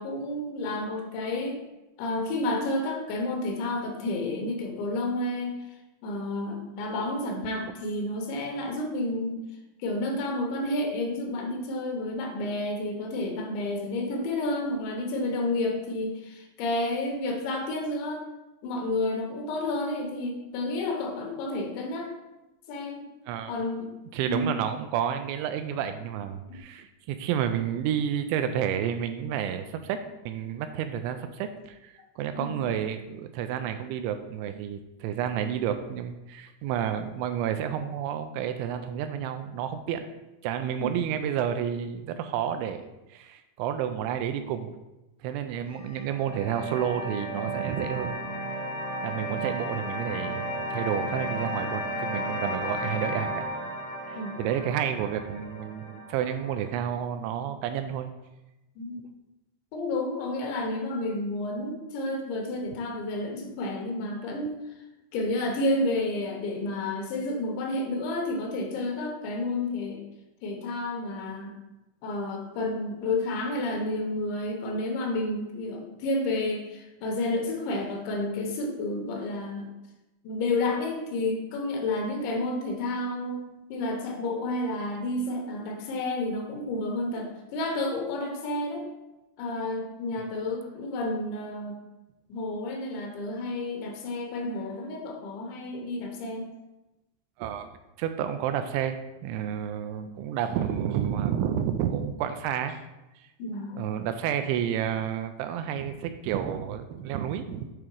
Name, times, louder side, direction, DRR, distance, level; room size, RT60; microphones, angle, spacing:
voice 1, 0.0-1.6 2.0-5.5 6.0-9.4 9.8-18.2 18.6-22.1 22.7-23.1 23.5-23.9 24.3-24.7 26.5-26.6 32.3-32.7 40.8-40.9 54.2-54.4 58.8-59.0 59.7-64.6 65.1-70.0 70.4-71.5 72.0-79.7 80.2-88.9 89.4-91.8 92.3-96.5 103.4-103.8, left 2 dB, 75° left, 1 dB, 3.2 m, -30 dB
voice 2, 23.3-23.6 24.1-30.0 30.3-40.0 40.4-42.8 43.1-44.8 45.2-48.3 49.0-53.5 54.1-58.1 97.4-97.7 98.0-102.8 103.2-103.3 103.8-107.7, right 9 dB, 85° right, 8 dB, 2.9 m, -30 dB
sound 1, 45.6-56.7, equal, 25° right, 1.1 m, -34 dB
8.6 x 3.7 x 4.6 m, 1.0 s
omnidirectional pair, 5.4 m